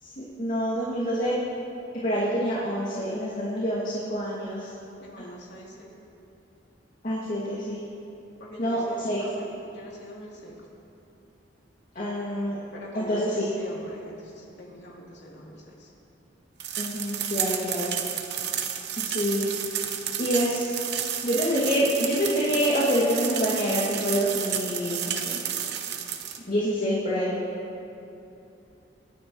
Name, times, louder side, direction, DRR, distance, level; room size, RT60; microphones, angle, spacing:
voice 1, 0.0-1.3 2.0-4.7 7.0-7.8 8.6-9.2 11.9-12.6 12.9-13.5 16.8-17.9 19.0-19.5 20.2-20.7 21.2-25.4 26.5-27.4, equal, 45° left, -8 dB, 2.4 m, -26 dB
voice 2, 5.0-6.0 8.4-10.6 12.7-15.9, equal, 65° left, -4 dB, 3.3 m, -43 dB
sound 1, 16.6-26.4, right 9 dB, 65° right, 0.9 m, -31 dB
27.0 x 10.5 x 3.2 m, 2.9 s
head